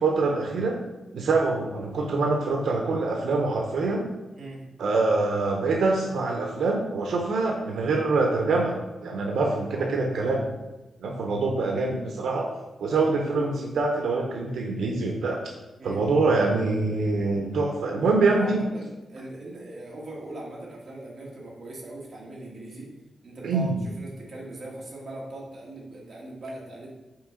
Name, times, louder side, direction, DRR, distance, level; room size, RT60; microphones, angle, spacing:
voice 1, 0.0-0.8 1.1-4.0 4.8-8.8 9.0-10.4 11.0-12.5 12.8-15.4 15.8-18.6 23.4-23.7, right 3 dB, 80° right, 1 dB, 0.7 m, -25 dB
voice 2, 9.6-10.0 13.0-13.5 15.8-16.0 18.3-22.9 23.2-26.9, right 1 dB, 35° right, -4 dB, 1.5 m, -40 dB
5.9 x 4.5 x 3.7 m, 1.1 s
wide cardioid pair, 170°, 0 cm